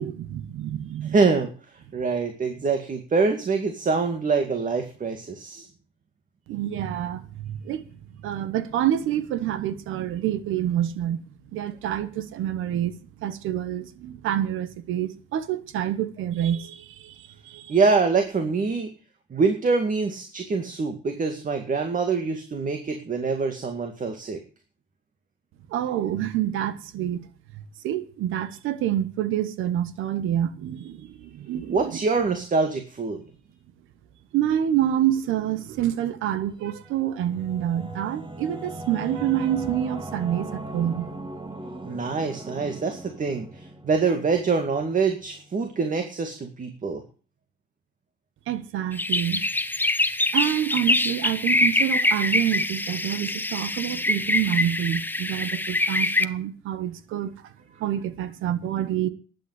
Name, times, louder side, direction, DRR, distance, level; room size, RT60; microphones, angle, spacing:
voice 1, 0.0-1.2 6.5-7.8 8.2-11.2 11.5-17.8 25.7-27.2 27.8-32.0 34.3-41.1 48.5-49.5 50.3-57.3 57.8-59.1, right 11 dB, 90° right, 1.2 m, -27 dB
voice 2, 1.1-1.5 1.9-5.7 17.7-18.9 19.3-24.4 31.7-33.2 41.9-47.0, right 4 dB, 40° right, 2.1 m, -25 dB
Singing / Musical instrument, 36.7-45.9, right 1 dB, 25° right, 2.2 m, -39 dB
sound 1, 48.9-56.2, left 2 dB, 10° left, 0.9 m, -24 dB
11.5 x 8.5 x 8.1 m
cardioid pair, 90°, 20 cm